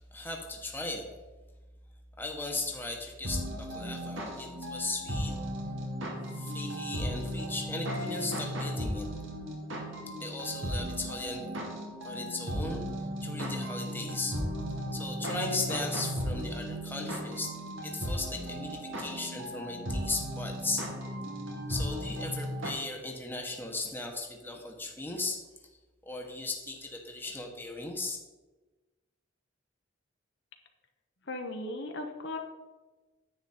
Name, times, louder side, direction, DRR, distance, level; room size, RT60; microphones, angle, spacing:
voice 1, 0.1-1.1 2.2-5.3 6.3-9.1 10.2-11.5 12.0-12.9 13.2-14.4 14.9-17.5 17.8-20.8 21.7-25.4 26.0-28.2, left 2 dB, 10° left, 1 dB, 1.3 m, -37 dB
sound 1, 3.2-22.7, equal, 80° right, 2.2 m, -36 dB
voice 2, 31.3-32.4, left 2 dB, 65° left, 3 dB, 1.2 m, -37 dB
9.9 x 8.0 x 4.4 m, 1.2 s
head